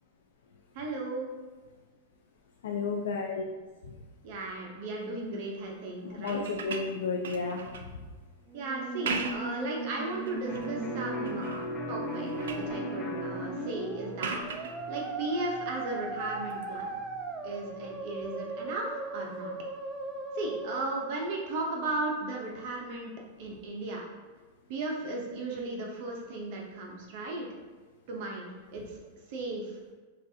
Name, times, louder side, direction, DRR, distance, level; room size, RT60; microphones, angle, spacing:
voice 1, 0.7-1.3 4.2-6.4 8.5-14.4 14.9-16.9 17.4-18.9 19.1-19.5 20.3-23.1 23.4-24.0 24.7-27.5 28.1-29.0 29.3-29.8, right 2 dB, 50° right, -1 dB, 0.8 m, -36 dB
voice 2, 2.6-3.5 3.8-3.9 6.0-8.0, left 4 dB, 85° left, 0 dB, 0.4 m, -33 dB
sound 1, 6.2-7.9 8.8-9.6 10.1-10.7 11.2-11.7 12.0-12.7 14.2-14.8 16.5-16.6, right 5 dB, 85° right, 0.4 m, -38 dB
Musical instrument, 8.5-21.5, right 2 dB, 15° right, 0.4 m, -38 dB
Electric guitar, 10.5-18.1, left 1 dB, 25° left, 0.6 m, -40 dB
6.4 x 2.4 x 2.7 m, 1.3 s
supercardioid pair, 145°, 0 cm